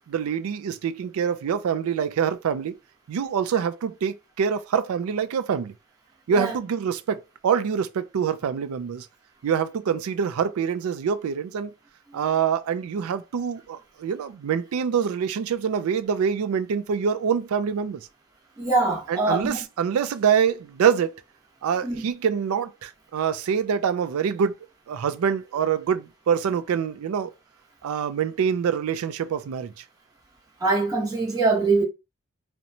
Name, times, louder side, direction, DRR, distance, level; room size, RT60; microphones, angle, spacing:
voice 1, 0.1-2.8 3.1-5.7 6.3-9.1 9.4-11.7 12.1-18.0 19.1-21.2 21.6-24.5 24.9-27.3 27.8-29.7, right 7 dB, 75° right, 0.3 m, -25 dB
voice 2, 18.6-19.6 21.8-22.0 30.6-31.8, right 3 dB, 15° right, 0.7 m, -23 dB
2.9 x 2.1 x 2.6 m
head